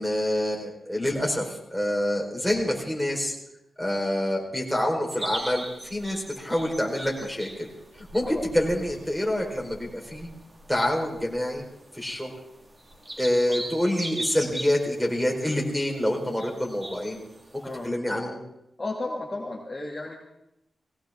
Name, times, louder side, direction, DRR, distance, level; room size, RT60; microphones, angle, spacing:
voice 1, 0.0-3.3 3.8-7.7 8.0-10.3 10.7-11.6 11.9-12.3 13.2-17.2 17.8-18.4, left 1 dB, ahead, -2 dB, 4.4 m, -27 dB
sound 1, 5.1-17.9, right 1 dB, 25° right, 1.9 m, -41 dB
voice 2, 18.8-20.1, left 2 dB, 25° left, -2 dB, 2.2 m, -33 dB
20.0 x 17.0 x 3.7 m, 0.82 s
wide cardioid pair, 110°, 0 cm